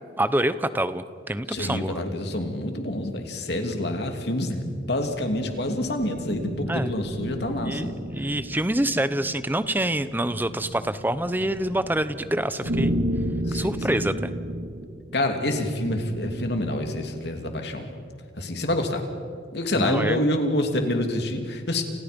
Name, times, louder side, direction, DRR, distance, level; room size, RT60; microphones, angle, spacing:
voice 1, 0.2-2.0 6.7-6.9 7.6-13.0 13.5-14.3 19.7-20.3, right 1 dB, 10° right, 13 dB, 0.8 m, -26 dB
voice 2, 1.5-8.0 13.5-14.0 15.1-17.9 18.4-19.1 19.5-21.8, left 1 dB, 60° left, 4 dB, 3.0 m, -27 dB
sound 1, 4.6-17.2, equal, 90° right, 2.1 m, -33 dB
30.0 x 30.0 x 5.4 m, 2.3 s
head